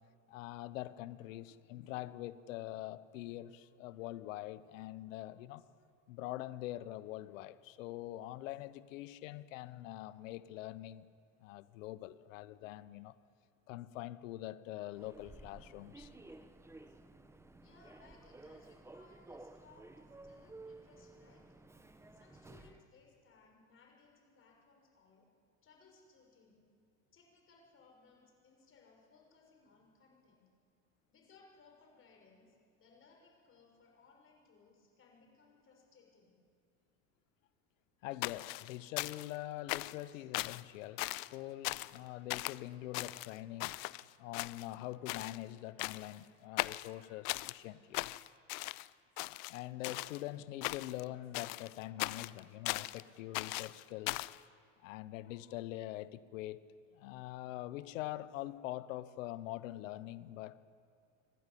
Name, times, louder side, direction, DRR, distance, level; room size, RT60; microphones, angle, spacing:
voice 1, 0.3-5.6 6.1-11.1 11.4-13.1 13.7-16.1 38.0-43.9 44.2-48.1 49.2-54.3 54.8-56.6 56.9-60.7, left 15 dB, 85° left, 1.0 m, -44 dB
Human voice / Subway metro underground, 14.9-22.9, right 2 dB, 5° right, 1.0 m, -55 dB
voice 2, 17.6-21.4 22.1-25.3 25.6-26.7 27.1-30.4 31.1-36.4, left 4 dB, 35° left, 6.6 m, -64 dB
sound 1, 38.2-39.4 39.7-40.0 40.3-40.6 41.0-41.3 41.6-42.0 42.3-42.6 42.9-44.0 44.3-44.8 45.1-45.4 45.8-46.2 46.6-47.6 47.9-48.9 49.2-50.2 50.6-51.0 51.3-53.0 53.3-54.4, left 23 dB, 60° left, 0.6 m, -39 dB
27.0 x 12.0 x 10.0 m
supercardioid pair, 120°, 38 cm